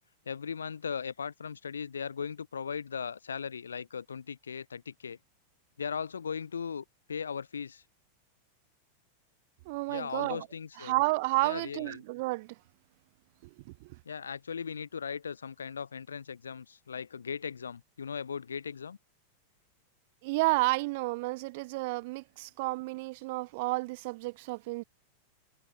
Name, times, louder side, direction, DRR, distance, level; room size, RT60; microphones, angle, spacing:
voice 1, 0.3-5.2 5.8-7.8 9.9-11.0 11.4-12.0 14.1-19.0, left 6 dB, 70° left, 4.0 m, -38 dB
voice 2, 9.7-10.5 10.8-12.6 13.8-14.0 20.2-24.8, right 23 dB, 50° right, 2.1 m, -31 dB
figure-of-eight pair, 90°, 0 cm